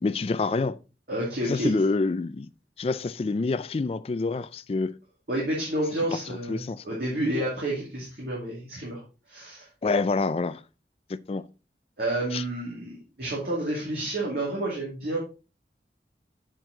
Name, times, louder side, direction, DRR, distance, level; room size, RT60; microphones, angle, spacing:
voice 1, 0.0-0.8 1.5-2.5 2.8-4.9 6.5-6.8 9.8-10.6 11.1-11.4 12.3-12.4, left 3 dB, 35° left, 0.3 m, -27 dB
voice 2, 1.1-1.8 5.3-9.0 9.3-9.7 12.0-15.2, right 1 dB, 55° right, 2.2 m, -30 dB
7.5 x 4.6 x 3.8 m
head